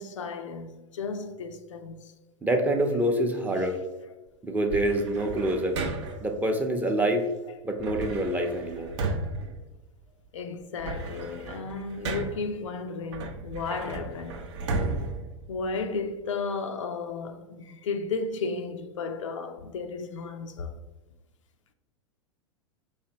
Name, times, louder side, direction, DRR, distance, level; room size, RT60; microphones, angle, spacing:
voice 1, 0.0-2.0 10.3-14.5 15.5-20.8, left 4 dB, 75° left, 0.4 m, -34 dB
voice 2, 2.4-3.7 4.4-5.8 6.2-7.2 7.6-8.9, right 1 dB, 10° right, 0.6 m, -26 dB
sound 1, 4.7-6.3 7.8-10.3 10.6-12.6 13.1-16.1, right 3 dB, 65° right, 0.7 m, -34 dB
5.2 x 3.2 x 2.9 m
hypercardioid pair, 95°, 16 cm